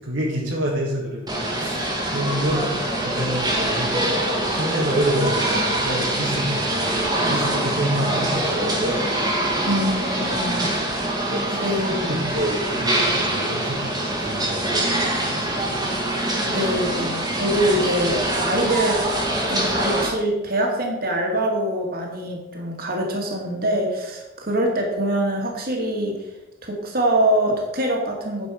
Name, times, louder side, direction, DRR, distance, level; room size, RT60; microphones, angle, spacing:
voice 1, 0.0-2.7 3.0-9.1 10.5-11.8 12.1-15.9, right 1 dB, 65° right, -3 dB, 1.8 m, -28 dB
sound 1, 1.3-20.1, right 1 dB, 20° right, 1.8 m, -24 dB
voice 2, 9.7-10.7 11.5-12.3 16.5-19.0 19.5-26.2 26.6-28.5, right 1 dB, 50° right, 0 dB, 2.2 m, -24 dB
9.8 x 6.7 x 5.0 m, 0.99 s
head